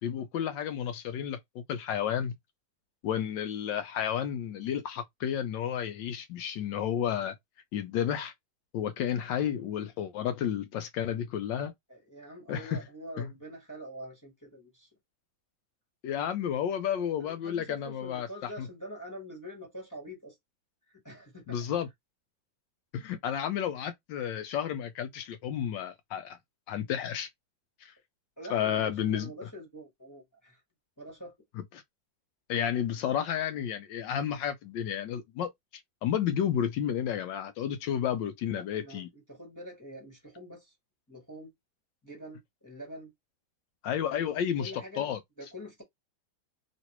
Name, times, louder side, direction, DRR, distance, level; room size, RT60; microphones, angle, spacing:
voice 1, 0.0-2.3 3.0-7.3 7.7-8.3 8.7-11.7 12.5-12.8 13.2-13.3 16.0-18.3 18.6-18.7 21.5-21.9 22.9-26.4 26.7-27.3 27.8-27.9 28.5-29.3 32.5-35.5 36.0-39.1 43.8-44.7 45.0-45.2, left 9 dB, 75° left, 1.2 m, -31 dB
voice 2, 11.9-14.9 17.2-20.4 20.9-21.6 28.4-30.6 31.0-31.3 38.5-40.7 41.1-41.5 42.0-43.1 44.1-44.3 44.6-45.0 45.4-45.8, equal, 10° left, 1.2 m, -45 dB
3.1 x 2.9 x 2.9 m
omnidirectional pair, 2.1 m